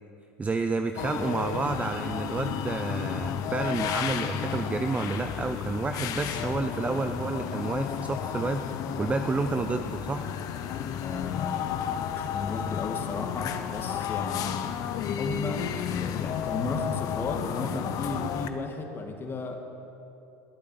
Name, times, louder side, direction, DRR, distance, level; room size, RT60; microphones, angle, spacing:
voice 1, 0.4-10.3, right 4 dB, 20° right, 8 dB, 0.6 m, -30 dB
sound 1, 1.0-18.5, left 9 dB, 55° left, 1.0 m, -32 dB
voice 2, 11.0-11.7 12.1-14.7 15.2-15.7 16.0-19.7, left 3 dB, 30° left, 3 dB, 2.4 m, -34 dB
20.5 x 8.6 x 7.7 m, 2.8 s
hypercardioid pair, 85°, 7 cm